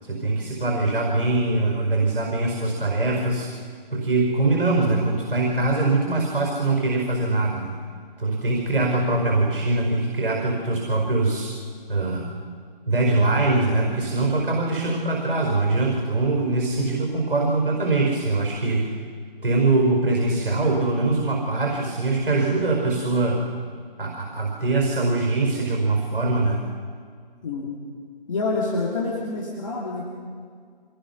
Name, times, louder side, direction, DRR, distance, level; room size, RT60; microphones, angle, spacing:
voice 1, 0.0-3.5 3.9-7.8 8.2-11.5 11.9-12.3 12.9-19.0 19.4-23.4 24.0-26.6, right 2 dB, 65° right, 0 dB, 5.1 m, -22 dB
voice 2, 28.3-30.1, left 3 dB, 35° left, -3 dB, 2.7 m, -27 dB
25.5 x 19.5 x 5.8 m, 2.1 s
figure-of-eight pair, 155°, 29 cm